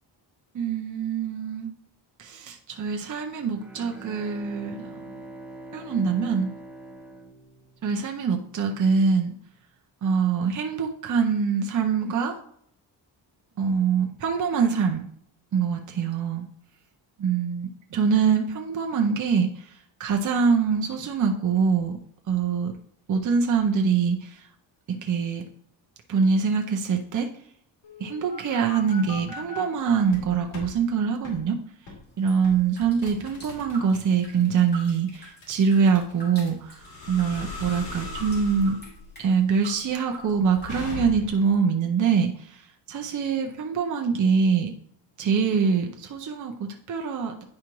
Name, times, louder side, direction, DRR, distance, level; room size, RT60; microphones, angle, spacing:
voice 1, 0.5-1.7 2.2-5.1 5.7-6.5 7.8-9.3 10.0-12.4 13.6-15.0 15.5-16.4 17.2-19.7 20.0-21.9 22.3-22.7 23.1-24.4 24.9-25.4 26.1-27.3 28.0-31.6 32.2-36.8 37.1-38.8 39.2-44.7 45.2-47.4, right 6 dB, 40° right, 2 dB, 0.7 m, -24 dB
Bowed string instrument, 3.5-8.3, right 2 dB, 5° right, 0.8 m, -43 dB
sound 1, 27.8-29.6 30.1-30.7 31.2-31.4 31.9-32.1 32.4-41.5, left 3 dB, 80° left, 2.7 m, -39 dB
sound 2, 32.2-39.8 40.1-41.0, right 2 dB, 20° left, 2.6 m, -46 dB
9.7 x 4.9 x 3.0 m, 0.67 s
wide cardioid pair, 155°, 45 cm